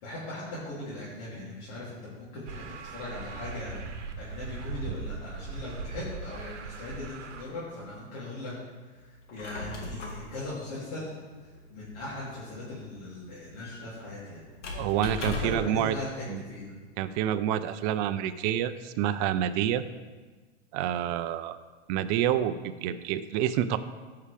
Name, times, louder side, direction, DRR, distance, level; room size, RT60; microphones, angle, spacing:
voice 1, 0.0-8.5 8.9-14.8 15.1-16.8, left 2 dB, 55° left, -9 dB, 3.1 m, -39 dB
sound 1, 2.5-7.4, right 4 dB, 85° right, 0.9 m, -39 dB
Squeak, 9.1-15.8, left 2 dB, 85° left, 1.9 m, -40 dB
voice 2, 14.7-16.0 16.3-16.4 17.0-19.8 20.7-21.6 21.9-23.8, right 10 dB, 40° right, 11 dB, 0.5 m, -28 dB
14.0 x 5.7 x 3.5 m, 1.4 s
hypercardioid pair, 120°, 35 cm